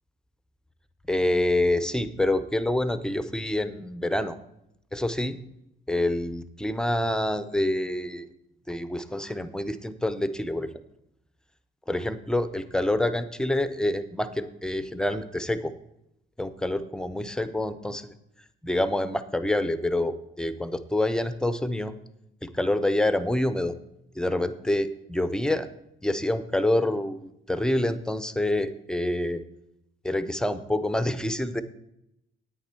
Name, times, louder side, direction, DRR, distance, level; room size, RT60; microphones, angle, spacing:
voice 1, 1.1-4.4 4.9-5.4 5.9-8.3 8.7-10.7 11.9-15.7 16.4-18.1 18.6-21.9 22.4-23.7 24.2-25.7 26.0-29.4 30.0-31.6, left 1 dB, 5° left, 12 dB, 0.7 m, -27 dB
9.7 x 9.1 x 4.4 m, 0.81 s
cardioid pair, 95°, 20 cm